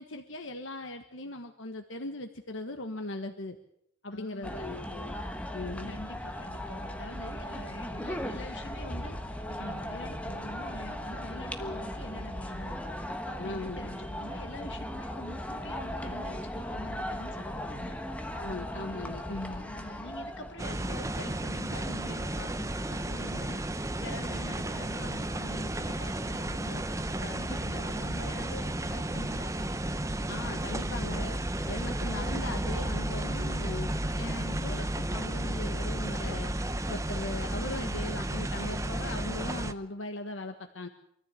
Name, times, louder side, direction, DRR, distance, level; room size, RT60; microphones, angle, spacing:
voice 1, 0.0-3.6 4.0-5.1 5.5-6.0 11.6-11.9 13.4-13.8 18.3-19.6 30.3-31.4 31.7-33.9 34.2-36.5 36.9-40.9, left 2 dB, 85° left, 5 dB, 1.5 m, -39 dB
voice 2, 4.1-4.8 5.9-18.0 19.5-29.5, left 2 dB, 70° left, 6 dB, 2.1 m, -45 dB
sound 1, 4.4-20.7, equal, 5° left, 1.3 m, -37 dB
sound 2, 20.6-39.7, right 1 dB, 15° right, 0.8 m, -33 dB
24.5 x 14.5 x 8.5 m, 0.75 s
head